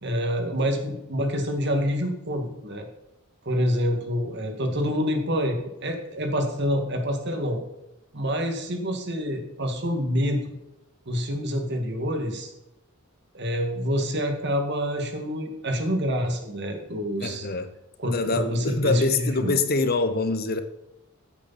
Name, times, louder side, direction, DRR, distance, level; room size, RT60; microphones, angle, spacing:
voice 1, 0.0-2.9 3.5-7.6 8.1-10.4 11.1-12.5 13.3-17.5 18.0-19.6, equal, 55° right, 2.2 m, -27 dB
voice 2, 17.2-17.7 18.0-20.6, left 3 dB, 45° left, 1.0 m, -25 dB
15.0 x 8.4 x 4.3 m
head